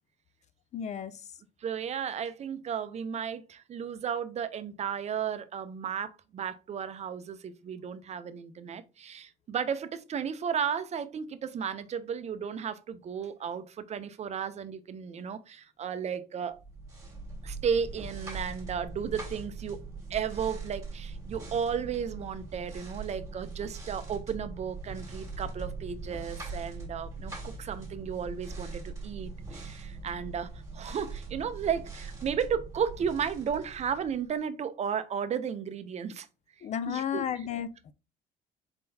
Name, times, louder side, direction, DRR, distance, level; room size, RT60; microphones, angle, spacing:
voice 1, 0.7-1.2 36.6-37.9, left 8 dB, 45° left, 0.4 m, -33 dB
voice 2, 1.6-16.6 17.4-36.3 36.9-37.3, right 7 dB, 40° right, 0.5 m, -34 dB
sound 1, 16.6-34.4, right 3 dB, 20° right, 1.7 m, -41 dB
4.3 x 3.8 x 2.7 m
cardioid pair, 110°, 17 cm